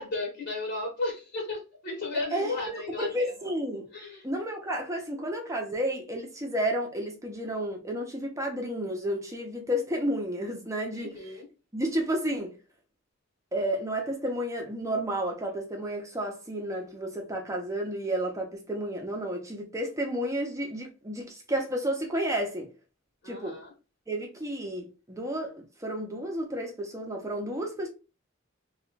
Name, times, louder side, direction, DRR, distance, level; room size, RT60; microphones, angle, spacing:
voice 1, 0.0-3.3 3.9-4.2 11.0-11.5 23.2-23.7, left 2 dB, 55° left, 1.1 m, -34 dB
voice 2, 2.1-3.9 4.2-11.4 11.7-12.5 13.5-22.7 23.3-23.6 24.1-27.9, right 1 dB, 15° right, 0.7 m, -31 dB
3.0 x 2.3 x 3.2 m
head